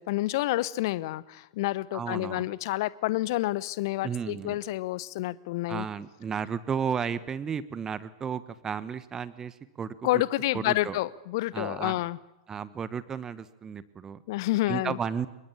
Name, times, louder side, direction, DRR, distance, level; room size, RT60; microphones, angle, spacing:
voice 1, 0.0-5.8 10.0-12.2 14.3-15.0, left 17 dB, 50° left, 19 dB, 1.0 m, -29 dB
voice 2, 1.9-2.5 4.0-4.6 5.7-10.2 10.5-11.0 11.5-12.0 12.5-14.2 14.7-15.3, right 7 dB, 20° right, 15 dB, 1.3 m, -33 dB
26.5 x 23.0 x 7.2 m, 1.0 s
figure-of-eight pair, 95°, 3 cm